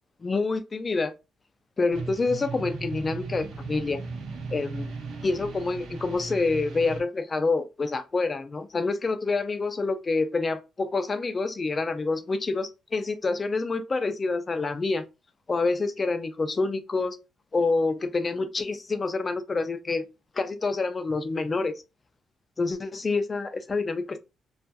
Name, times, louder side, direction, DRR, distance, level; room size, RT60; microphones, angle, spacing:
voice 1, 0.2-1.1 1.8-4.0 4.5-4.9 5.2-15.1 15.5-17.2 17.5-20.1 20.4-21.8 22.6-24.2, left 3 dB, 30° left, 0.4 m, -27 dB
sound 1, 1.9-7.0, right 4 dB, 75° right, 0.8 m, -37 dB
2.7 x 2.3 x 2.2 m
cardioid pair, 90°, 0 cm